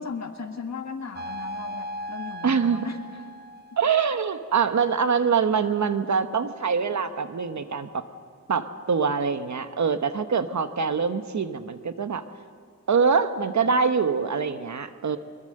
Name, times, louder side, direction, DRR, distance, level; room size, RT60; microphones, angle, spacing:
voice 1, 0.0-3.0, left 5 dB, 65° left, 5 dB, 1.8 m, -36 dB
sound 1, 1.1-4.3, equal, 35° right, 0.8 m, -37 dB
voice 2, 2.4-2.8 3.8-8.0 8.5-12.2 12.9-15.2, right 6 dB, 70° right, 10 dB, 1.1 m, -24 dB
23.0 x 21.5 x 6.6 m, 2.1 s
wide cardioid pair, 100°, 30 cm